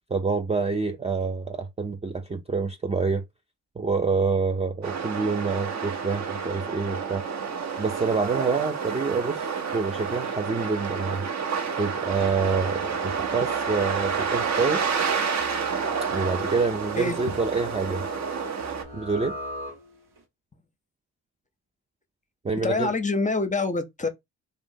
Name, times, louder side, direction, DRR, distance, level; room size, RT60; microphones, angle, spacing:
voice 1, 0.1-3.2 3.8-7.2 7.8-11.3 11.8-14.9 16.1-18.0 18.9-19.4 22.4-22.9, right 4 dB, 15° right, 0.4 m, -27 dB
sound 1, 4.8-18.8, right 6 dB, 45° right, 0.7 m, -29 dB
sound 2, 12.0-20.2, right 1 dB, 75° right, 0.9 m, -41 dB
voice 2, 22.6-24.1, left 3 dB, 20° left, 0.6 m, -26 dB
2.5 x 2.1 x 3.7 m
hypercardioid pair, 45°, 40 cm